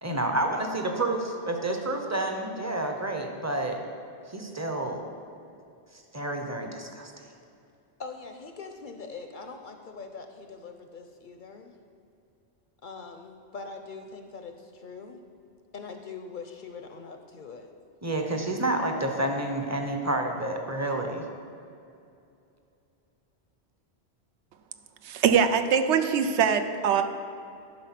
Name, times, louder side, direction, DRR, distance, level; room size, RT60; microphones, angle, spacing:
voice 1, 0.0-3.8 4.3-5.0 6.1-7.1 18.0-21.2, right 1 dB, 20° right, 3 dB, 0.6 m, -29 dB
voice 2, 8.0-11.8 12.8-15.2 15.7-17.7, left 4 dB, 55° left, 6 dB, 0.6 m, -42 dB
voice 3, 25.0-27.0, right 7 dB, 80° right, 9 dB, 0.9 m, -23 dB
11.0 x 5.0 x 5.8 m, 2.5 s
omnidirectional pair, 1.1 m